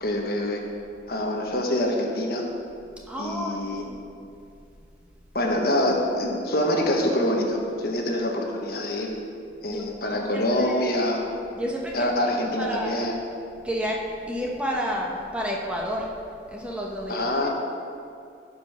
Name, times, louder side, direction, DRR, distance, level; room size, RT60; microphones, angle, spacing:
voice 1, 0.0-0.6 1.1-2.4 3.2-3.8 5.3-9.1 9.6-11.2 11.9-13.2 17.1-17.5, left 1 dB, 55° left, 1 dB, 1.3 m, -25 dB
voice 2, 3.1-3.6 3.9-4.0 9.7-9.8 10.1-12.1 12.6-13.1 13.6-14.0 14.3-16.1 16.5-17.5, equal, 5° right, -2 dB, 1.1 m, -31 dB
14.5 x 5.4 x 5.6 m, 2.5 s
head